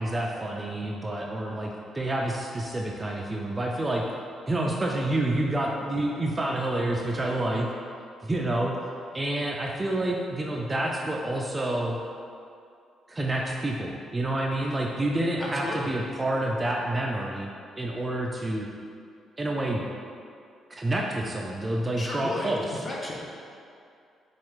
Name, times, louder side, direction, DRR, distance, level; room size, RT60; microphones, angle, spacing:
voice 1, 0.0-4.0 4.5-7.7 8.2-8.8 9.1-12.0 13.1-17.5 17.8-18.7 19.4-19.8 20.7-22.7, right 1 dB, 20° right, -1 dB, 0.3 m, -28 dB
voice 2, 15.4-15.9 22.0-23.2, left 2 dB, 30° left, -3 dB, 0.7 m, -34 dB
4.3 x 2.3 x 3.0 m, 2.4 s
cardioid pair, 90°, 0 cm